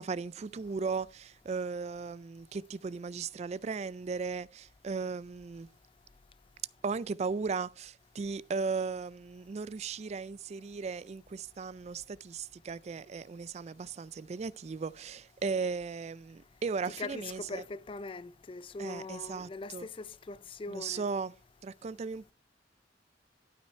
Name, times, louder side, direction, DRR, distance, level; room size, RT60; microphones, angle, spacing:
voice 1, 0.0-5.7 6.8-17.6 18.8-19.9 20.7-21.3 21.6-22.3, right 4 dB, 40° right, 0.3 m, -36 dB
voice 2, 17.0-21.0, left 3 dB, 30° left, 0.4 m, -41 dB
12.0 x 5.7 x 4.3 m
head